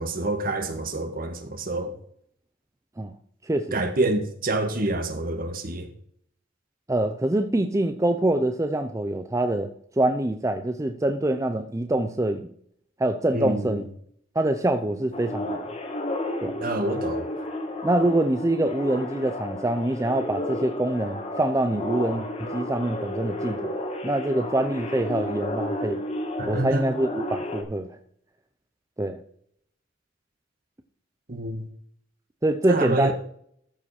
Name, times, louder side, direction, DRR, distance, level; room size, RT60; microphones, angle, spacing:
voice 1, 0.0-1.9 3.7-5.9 13.3-13.8 16.6-17.2 26.4-26.9 31.3-31.7 32.7-33.1, right 2 dB, 50° right, 1.6 m, -27 dB
voice 2, 3.4-3.8 6.9-9.7 10.0-12.5 13.0-13.9 14.4-15.6 16.4-16.5 17.8-23.8 24.0-26.0 26.5-28.0 29.0-29.2 32.4-33.1, right 1 dB, 15° right, 0.6 m, -25 dB
sound 1, 15.1-27.6, left 1 dB, 35° left, 1.6 m, -32 dB
13.5 x 5.3 x 4.9 m
head